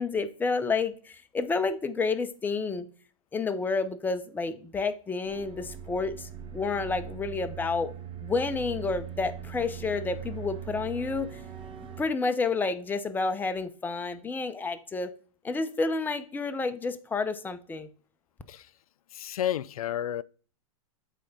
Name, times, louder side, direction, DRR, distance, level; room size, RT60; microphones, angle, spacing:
voice 1, 0.0-2.9 3.3-7.9 8.2-11.3 11.8-15.1 15.4-17.9, left 4 dB, 10° left, 0.6 m, -30 dB
sound 1, 5.2-12.0, right 9 dB, 30° right, 1.0 m, -41 dB
voice 2, 19.1-20.2, left 11 dB, 90° left, 0.4 m, -31 dB
8.3 x 3.5 x 5.2 m
hypercardioid pair, 120°, 18 cm